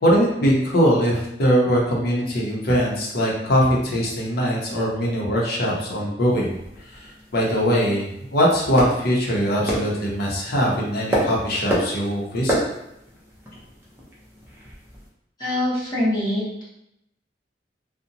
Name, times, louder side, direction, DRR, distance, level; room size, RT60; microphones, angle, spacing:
voice 1, 0.0-6.5 6.9-7.1 7.3-12.6, equal, 60° left, -3 dB, 0.7 m, -21 dB
sound 1, 6.2-15.1, right 1 dB, 15° right, 0.6 m, -31 dB
voice 2, 15.4-16.6, left 1 dB, 25° left, -11 dB, 0.8 m, -24 dB
2.7 x 2.1 x 2.6 m, 0.81 s
head